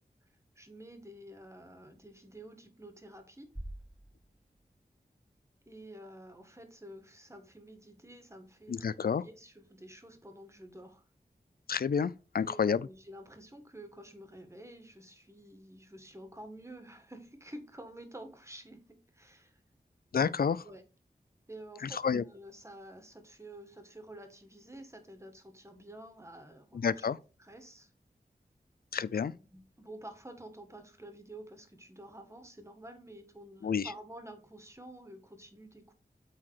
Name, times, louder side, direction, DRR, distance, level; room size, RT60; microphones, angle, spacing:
voice 1, 0.6-3.5 5.7-11.0 12.4-19.6 20.6-20.8 21.5-22.0 22.3-27.1 27.4-27.9 29.0-35.9, right 1 dB, 15° right, 1.8 m, -50 dB
sound 1, 3.5-5.6, right 1 dB, ahead, 1.3 m, -48 dB
voice 2, 8.7-9.2 11.7-12.9 20.1-20.6 21.8-22.2 26.7-27.2 28.9-29.3 33.6-33.9, left 6 dB, 65° left, 0.5 m, -30 dB
8.5 x 4.0 x 4.8 m
wide cardioid pair, 75°, 17 cm